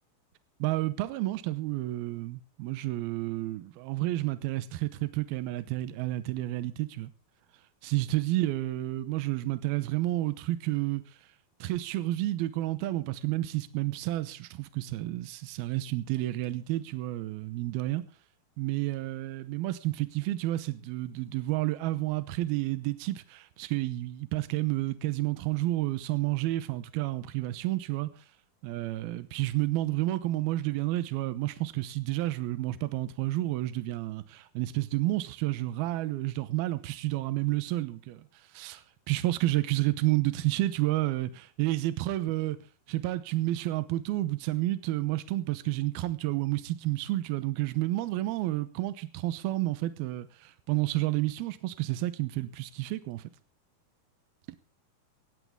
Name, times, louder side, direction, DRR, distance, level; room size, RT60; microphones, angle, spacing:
voice 1, 0.6-7.1 7.8-11.0 11.6-18.0 18.6-28.1 28.6-38.2 38.5-42.6 42.9-53.2, right 16 dB, 85° right, 2.8 m, -30 dB
17.5 x 15.5 x 3.7 m
omnidirectional pair, 4.4 m